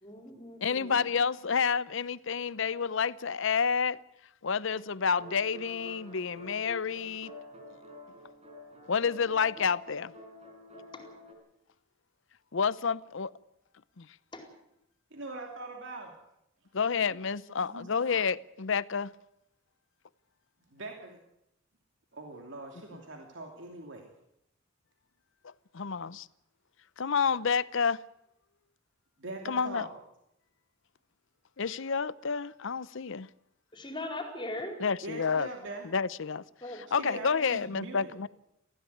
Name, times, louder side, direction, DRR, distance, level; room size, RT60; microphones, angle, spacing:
voice 1, 0.0-1.0 10.9-11.0 14.3-14.4 33.7-34.7 36.6-36.8, left 1 dB, 25° left, 4.5 m, -39 dB
voice 2, 0.6-4.0 4.4-7.3 8.9-10.1 12.5-13.3 14.0-14.1 16.7-19.1 25.4-26.3 27.0-28.0 29.4-29.9 31.6-33.3 34.8-35.5 35.9-38.3, left 6 dB, 65° left, 0.7 m, -29 dB
sound 1, 5.1-11.3, left 1 dB, 30° right, 5.5 m, -49 dB
voice 3, 15.1-16.1 17.6-17.9 20.7-21.2 22.1-24.1 29.2-30.0 35.0-35.9 36.9-38.1, right 2 dB, 65° right, 2.8 m, -42 dB
20.0 x 15.5 x 9.4 m
head